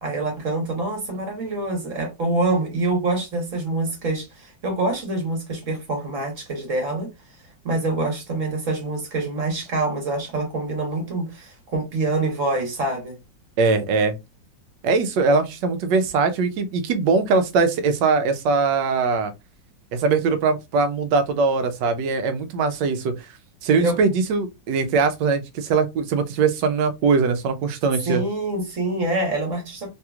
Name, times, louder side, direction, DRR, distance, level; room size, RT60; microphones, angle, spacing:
voice 1, 0.0-7.1 7.6-13.2 23.8-24.0 28.1-29.9, right 2 dB, 45° right, 1.4 m, -25 dB
voice 2, 13.6-14.1 14.8-19.3 19.9-23.1 23.6-28.2, right 4 dB, 75° right, 1.2 m, -21 dB
3.3 x 2.9 x 2.3 m
omnidirectional pair, 2.1 m